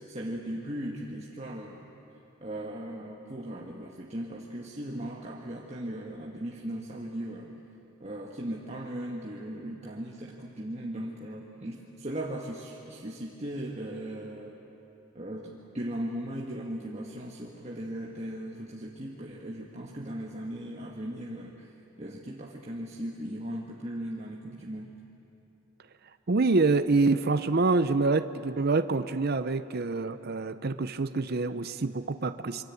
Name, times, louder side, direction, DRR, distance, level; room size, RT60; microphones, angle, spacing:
voice 1, 0.0-1.9 2.4-7.5 8.0-14.6 15.1-21.7 22.0-25.0, right 1 dB, 30° right, -1 dB, 1.5 m, -38 dB
voice 2, 26.3-32.6, right 3 dB, 50° right, 11 dB, 0.6 m, -26 dB
27.0 x 23.5 x 8.4 m, 3.0 s
head